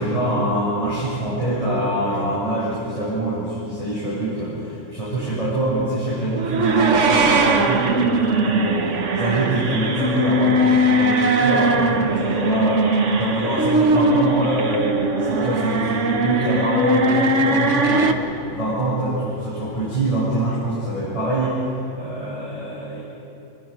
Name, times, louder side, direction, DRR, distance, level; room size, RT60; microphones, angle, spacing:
voice 1, 0.0-12.9 13.2-23.0, right 1 dB, 30° left, -11 dB, 8.0 m, -24 dB
sound 1, 6.3-18.1, right 2 dB, 70° right, 1.6 m, -20 dB
28.0 x 22.5 x 5.5 m, 2.8 s
omnidirectional pair, 1.3 m